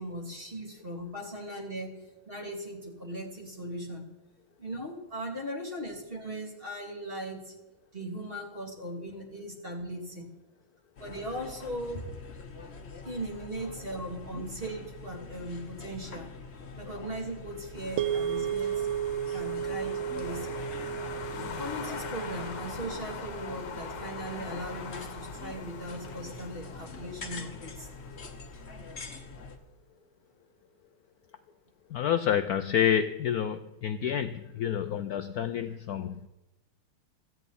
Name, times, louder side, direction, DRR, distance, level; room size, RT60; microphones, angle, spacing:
voice 1, 0.0-2.0 2.3-4.1 4.6-7.5 7.9-10.3 11.0-12.1 13.0-16.3 16.8-18.9 19.3-20.6 21.6-27.9, right 1 dB, 25° right, -1 dB, 3.1 m, -38 dB
sound 1, 11.0-29.6, left 4 dB, 35° left, 1.3 m, -44 dB
sound 2, 17.8-28.5, left 6 dB, 60° left, 1.7 m, -43 dB
sound 3, 18.0-26.3, right 9 dB, 75° right, 1.4 m, -35 dB
voice 2, 31.9-36.2, left 9 dB, 75° left, 10 dB, 0.8 m, -28 dB
16.5 x 15.0 x 4.2 m, 1.0 s
omnidirectional pair, 2.3 m